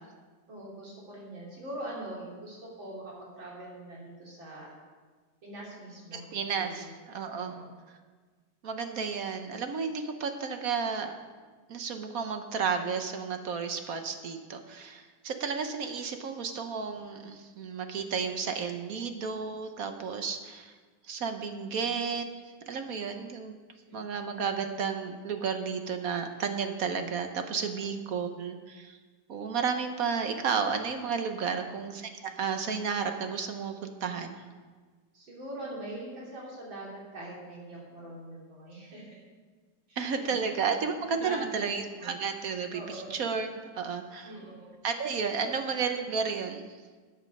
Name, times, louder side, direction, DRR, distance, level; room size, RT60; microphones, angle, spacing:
voice 1, 0.5-4.7 5.4-6.3 6.6-6.9 7.4-7.7 23.9-24.0 28.1-28.2 31.4-31.7 35.1-39.2 39.9-40.3 41.2-41.7 42.7-43.1 44.2-44.7 45.4-45.5, right 1 dB, 80° right, -4 dB, 3.9 m, -43 dB
voice 2, 6.1-7.5 7.9-8.0 8.6-11.1 11.7-20.7 21.1-22.3 22.7-23.6 23.9-29.0 29.3-34.4 40.0-43.5 43.7-44.3 44.8-46.8, right 6 dB, 55° right, 6 dB, 1.1 m, -32 dB
13.5 x 9.2 x 5.3 m, 1.4 s
omnidirectional pair, 2.1 m